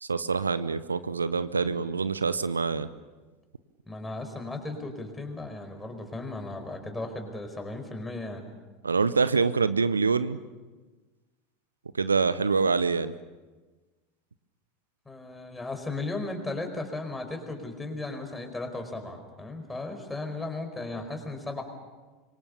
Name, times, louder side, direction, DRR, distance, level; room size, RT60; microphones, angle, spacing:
voice 1, 0.0-2.9 8.8-10.4 12.0-13.1, right 4 dB, 80° right, 15 dB, 0.7 m, -25 dB
voice 2, 3.9-8.4 15.0-21.6, left 2 dB, 10° left, 5 dB, 4.8 m, -36 dB
26.0 x 23.5 x 7.0 m, 1.3 s
figure-of-eight pair, 80°, 0 cm